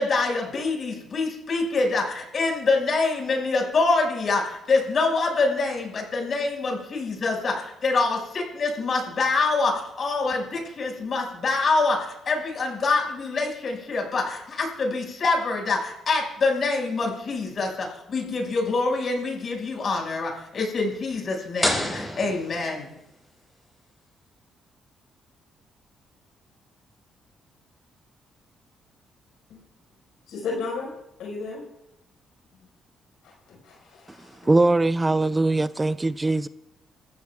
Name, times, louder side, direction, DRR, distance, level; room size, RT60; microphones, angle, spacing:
voice 1, 0.0-22.9, left 3 dB, 50° left, 0 dB, 5.9 m, -25 dB
sound 1, 21.6-23.3, left 1 dB, 10° left, 6.6 m, -29 dB
voice 2, 30.3-30.9 31.2-31.6 33.2-34.5, left 4 dB, 80° left, -2 dB, 5.1 m, -34 dB
voice 3, 34.4-36.5, right 2 dB, 20° right, 15 dB, 0.4 m, -21 dB
27.5 x 15.0 x 2.4 m, 0.88 s
cardioid pair, 90°, 0 cm